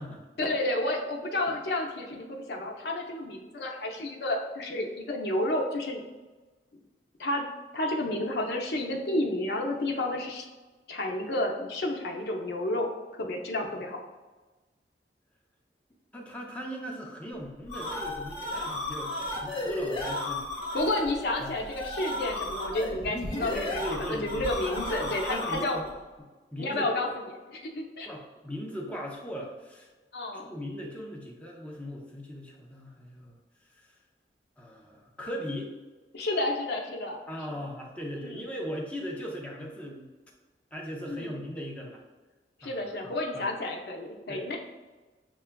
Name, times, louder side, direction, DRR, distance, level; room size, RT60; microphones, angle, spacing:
voice 1, 0.4-6.0 7.2-7.4 7.7-10.4 10.9-14.0 20.7-25.8 26.6-27.1 27.7-28.1 30.1-30.5 36.1-37.2 38.2-38.4 41.1-41.3 42.6-44.6, left 1 dB, 60° left, 1 dB, 0.6 m, -31 dB
voice 2, 16.1-20.5 21.4-21.5 23.8-24.5 25.0-25.9 26.2-26.9 28.0-29.9 30.3-33.4 33.7-33.9 34.6-35.7 37.3-40.1 40.7-42.0 42.6-42.9 43.3-43.5 44.3-44.6, equal, 10° left, -2 dB, 0.5 m, -38 dB
sound 1, 17.4-25.9, left 1 dB, 30° left, 1.0 m, -34 dB
6.5 x 2.3 x 2.2 m, 1.2 s
head